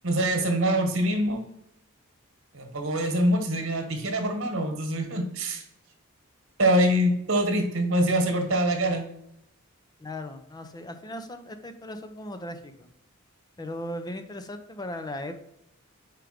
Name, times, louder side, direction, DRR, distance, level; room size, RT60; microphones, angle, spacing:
voice 1, 0.0-1.4 2.5-5.6 6.6-9.1, right 1 dB, 60° right, 4 dB, 1.4 m, -24 dB
voice 2, 10.0-12.9 13.6-15.3, left 1 dB, 20° left, 8 dB, 0.6 m, -37 dB
5.1 x 4.5 x 5.0 m, 0.80 s
head